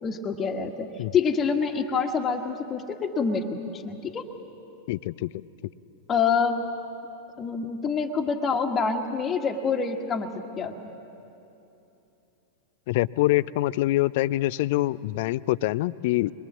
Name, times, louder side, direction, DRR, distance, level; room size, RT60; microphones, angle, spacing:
voice 1, 0.0-4.3 6.1-6.6 7.4-10.7, left 5 dB, 25° left, 3 dB, 1.5 m, -26 dB
voice 2, 4.9-5.3 12.9-16.3, left 17 dB, 50° left, 20 dB, 0.5 m, -25 dB
23.5 x 22.5 x 7.4 m, 2.9 s
figure-of-eight pair, 90°, 0 cm